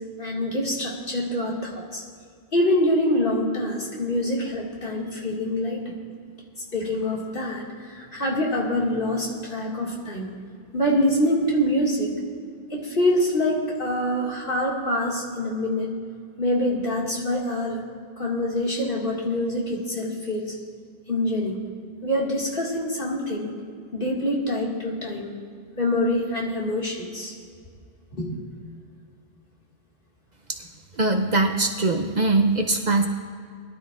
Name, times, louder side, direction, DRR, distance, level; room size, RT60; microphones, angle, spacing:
voice 1, 0.2-2.0 2.5-5.8 6.7-10.3 10.7-12.1 12.7-15.9 16.4-17.8 18.2-20.5 21.1-21.6 22.0-23.5 23.9-25.3 25.8-27.3 28.1-28.4, left 1 dB, 55° left, -3 dB, 2.3 m, -25 dB
voice 2, 31.0-33.1, right 2 dB, 50° right, 4 dB, 0.8 m, -21 dB
21.0 x 12.0 x 2.5 m, 2.2 s
omnidirectional pair, 1.1 m